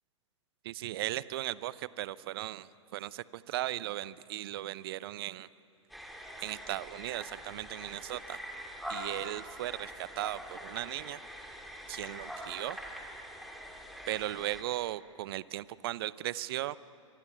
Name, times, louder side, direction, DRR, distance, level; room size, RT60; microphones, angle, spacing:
voice 1, 0.6-5.5 6.4-8.4 8.9-11.2 11.9-12.8 14.1-16.8, right 15 dB, 50° right, 19 dB, 0.7 m, -37 dB
sound 1, 5.9-14.6, equal, ahead, 3.0 m, -44 dB
24.5 x 24.0 x 9.5 m, 2.5 s
figure-of-eight pair, 105°, 16 cm